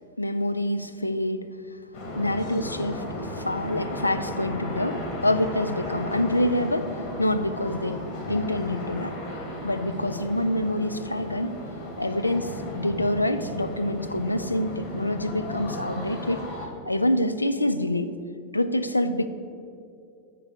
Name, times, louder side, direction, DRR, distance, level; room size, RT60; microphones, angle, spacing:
voice 1, 0.2-1.5 2.2-8.0 8.3-9.1 9.6-11.6 12.0-16.5 16.9-18.1 18.5-19.3, left 1 dB, 85° left, 9 dB, 0.4 m, -26 dB
sound 1, 1.9-16.7, left 1 dB, 45° left, 1.6 m, -35 dB
8.2 x 5.3 x 4.8 m, 2.5 s
figure-of-eight pair, 90°, 0 cm